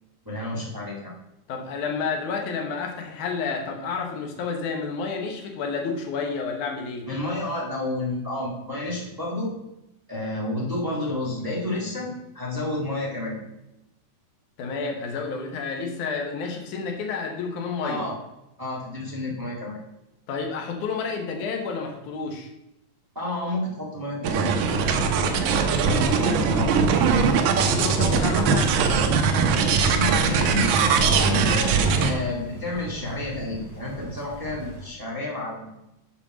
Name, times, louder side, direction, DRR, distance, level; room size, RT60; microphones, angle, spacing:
voice 1, 0.2-1.1 7.1-9.5 10.1-13.4 17.8-18.2 18.6-19.8 23.1-24.5 24.9-26.9 29.5-35.7, left 1 dB, 20° right, -6 dB, 0.5 m, -30 dB
voice 2, 1.5-7.1 14.6-18.1 20.3-22.5 27.6-28.7, left 5 dB, 65° left, 3 dB, 2.2 m, -30 dB
sound 1, 24.2-32.1, right 5 dB, 75° right, 2.3 m, -21 dB
Thunder / Rain, 29.3-34.9, equal, 10° left, 2.1 m, -38 dB
7.2 x 4.8 x 6.1 m, 0.92 s
omnidirectional pair, 4.1 m